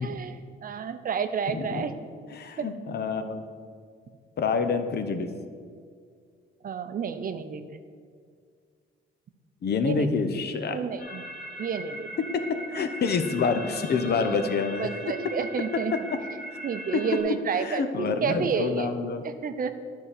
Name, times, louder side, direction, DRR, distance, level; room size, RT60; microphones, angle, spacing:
voice 1, 0.0-1.9 2.6-2.7 6.6-7.8 9.8-10.1 10.7-11.2 11.6-12.1 13.0-13.1 14.0-14.3 14.8-15.9 16.6-18.9 19.2-19.7, right 6 dB, 45° right, 9 dB, 0.6 m, -30 dB
voice 2, 1.5-1.9 2.3-3.4 4.4-5.3 9.6-10.8 12.3-14.9 16.9-17.0 17.6-19.2, left 5 dB, 55° left, 8 dB, 0.7 m, -27 dB
sound 1, 11.0-17.2, right 1 dB, 75° left, 2.1 m, -40 dB
9.8 x 3.7 x 6.6 m, 2.1 s
cardioid pair, 90°, 20 cm